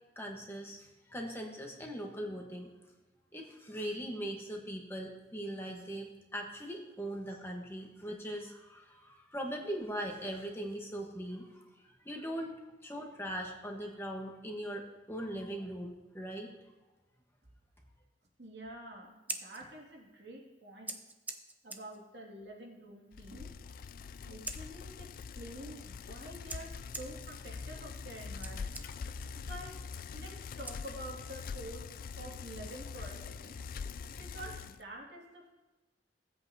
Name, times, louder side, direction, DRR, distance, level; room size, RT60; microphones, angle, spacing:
voice 1, 0.2-2.7 3.3-12.6 12.8-16.5, equal, 15° left, 1 dB, 1.2 m, -40 dB
voice 2, 18.4-21.0 21.6-23.5 24.3-28.8 29.4-29.8 30.1-31.9 32.1-33.6 34.2-35.5, right 1 dB, 75° right, -1 dB, 2.3 m, -48 dB
Scissors, 19.0-31.4, right 2 dB, 10° right, 0.5 m, -49 dB
Bicycle, 23.1-34.8, left 5 dB, 50° left, 0.3 m, -44 dB
17.0 x 7.9 x 2.8 m, 1.1 s
head